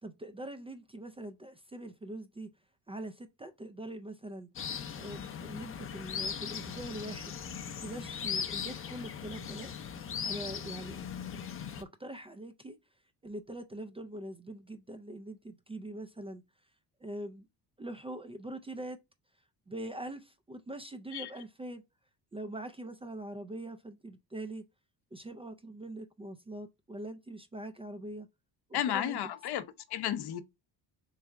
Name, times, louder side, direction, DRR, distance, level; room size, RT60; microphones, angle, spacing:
voice 1, 0.0-2.5 2.9-4.5 4.9-7.4 7.8-9.7 10.2-11.0 11.3-12.8 13.2-16.4 17.0-17.5 17.8-19.0 19.7-21.8 22.3-24.6 25.1-28.3 28.7-29.2, right 1 dB, 15° right, 0.3 m, -43 dB
sound 1, 4.6-11.8, left 7 dB, 30° left, 0.6 m, -39 dB
voice 2, 28.7-30.4, left 11 dB, 70° left, 0.7 m, -33 dB
3.5 x 3.2 x 3.5 m
cardioid pair, 115°, 41 cm